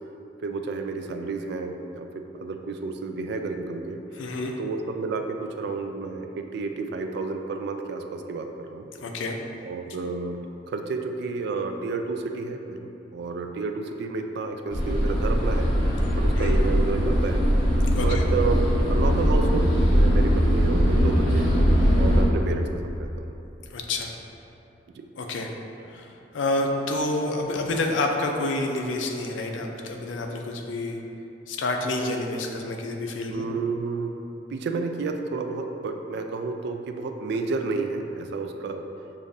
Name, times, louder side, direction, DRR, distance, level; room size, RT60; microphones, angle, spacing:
voice 1, 0.4-4.0 4.6-8.9 9.6-15.7 16.1-17.4 18.0-21.5 22.0-23.1 24.9-25.1 33.3-34.1 34.5-38.9, right 4 dB, 60° right, 5 dB, 0.3 m, -31 dB
voice 2, 4.1-4.5 9.0-9.4 16.4-16.6 17.9-18.2 23.7-24.1 25.2-25.5 25.8-31.0 31.5-33.5, left 2 dB, 80° left, 3 dB, 0.4 m, -28 dB
sound 1, 14.7-22.2, equal, 25° left, 0.8 m, -21 dB
6.9 x 2.5 x 2.6 m, 2.9 s
head